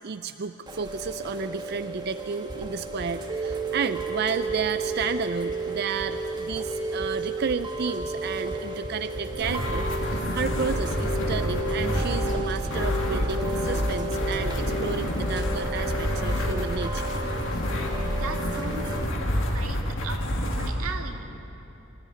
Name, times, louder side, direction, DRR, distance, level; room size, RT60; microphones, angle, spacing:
voice 1, 0.0-17.7, right 6 dB, 50° right, 11 dB, 0.4 m, -32 dB
Chime / Rain, 0.7-19.1, right 2 dB, 20° right, 1.4 m, -33 dB
sound 1, 2.5-2.6 3.0-3.1 3.5-3.6 4.0-4.1 4.5-4.6 5.0-5.1 5.5-5.6 6.0-6.1 6.5-6.6 7.0-7.1 7.5-7.6 8.0-8.1 8.5-9.5 10.5-11.6 12.5-12.6 12.9-13.2 13.5-13.6 14.5-14.6 14.9-15.0 15.2-15.3 15.5-15.7, equal, 30° left, 3.1 m, -38 dB
sound 2, 9.3-20.7, left 1 dB, 60° left, 2.6 m, -28 dB
voice 2, 18.1-21.2, right 4 dB, 90° right, 4 dB, 1.9 m, -38 dB
25.5 x 14.0 x 9.5 m, 3.0 s
head